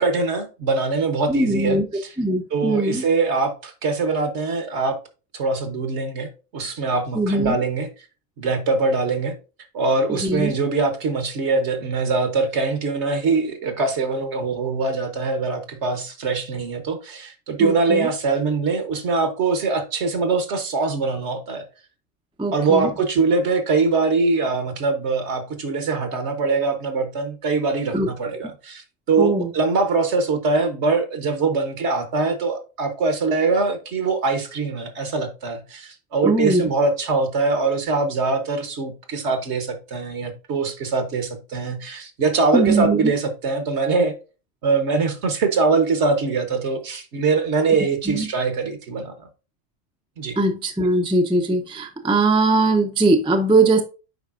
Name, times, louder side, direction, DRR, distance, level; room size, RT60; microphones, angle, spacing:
voice 1, 0.0-2.1 2.5-5.0 5.3-7.9 8.4-9.3 9.7-21.6 22.5-44.1 44.6-49.1 50.2-50.4, right 4 dB, 60° right, 1.3 m, -23 dB
voice 2, 1.3-1.8 2.2-3.0 7.1-7.6 10.1-10.5 17.6-18.1 22.4-22.9 27.9-28.1 29.2-29.5 36.2-36.7 42.5-43.1 48.0-48.3 50.4-53.8, right 2 dB, 5° right, 0.6 m, -20 dB
8.0 x 5.2 x 2.5 m
omnidirectional pair, 1.3 m